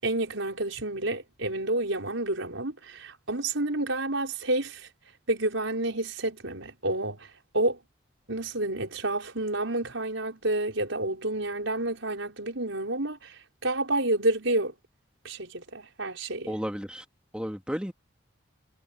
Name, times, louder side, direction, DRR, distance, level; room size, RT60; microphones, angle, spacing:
voice 1, 0.0-4.9 5.3-7.3 7.5-7.8 8.3-13.2 13.6-14.7 15.2-16.6, right 2 dB, 80° right, 5.5 m, -29 dB
voice 2, 16.5-17.1 17.3-17.9, equal, 5° right, 2.2 m, -32 dB
head